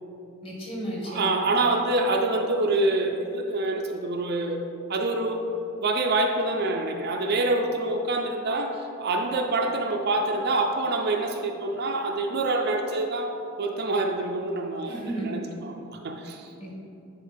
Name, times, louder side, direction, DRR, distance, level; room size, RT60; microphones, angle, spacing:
voice 1, 0.4-1.3 14.8-15.3 16.6-16.7, right 1 dB, 25° left, -4 dB, 1.7 m, -33 dB
voice 2, 1.0-4.6 4.9-5.5 5.8-16.5, right 2 dB, 45° right, 3 dB, 0.4 m, -26 dB
9.9 x 4.6 x 3.4 m, 2.9 s
head